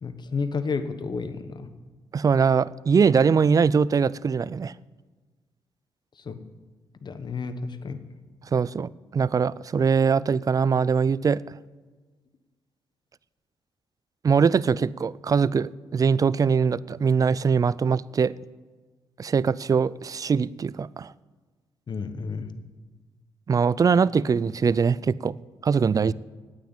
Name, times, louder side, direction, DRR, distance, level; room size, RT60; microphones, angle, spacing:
voice 1, 0.0-1.7 6.2-6.4 7.0-8.0 21.9-22.5, left 4 dB, 50° left, 11 dB, 1.1 m, -31 dB
voice 2, 2.1-4.7 8.5-11.4 14.2-18.3 19.2-21.1 23.5-25.3 25.6-26.1, right 6 dB, 40° right, 21 dB, 0.4 m, -22 dB
9.3 x 9.1 x 8.9 m, 1.4 s
supercardioid pair, 60°, 10 cm